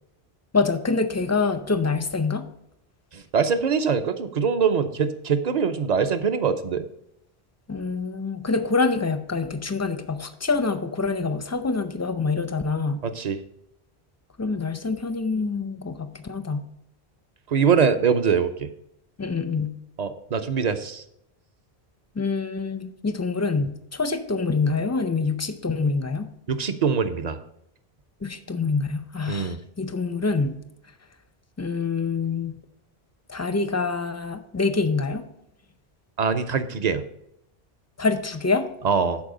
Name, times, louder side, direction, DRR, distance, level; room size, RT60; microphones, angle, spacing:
voice 1, 0.5-2.5 7.7-13.0 14.4-16.7 19.2-19.8 22.2-26.3 28.2-30.6 31.6-32.5 33.3-35.3 38.0-38.7, left 4 dB, 25° left, 9 dB, 0.4 m, -26 dB
voice 2, 3.1-6.8 13.0-13.4 17.5-18.7 20.0-21.0 26.5-27.4 29.3-29.6 36.2-37.0 38.8-39.2, right 6 dB, 45° right, 10 dB, 0.7 m, -23 dB
12.0 x 4.7 x 3.8 m, 0.78 s
omnidirectional pair, 1.1 m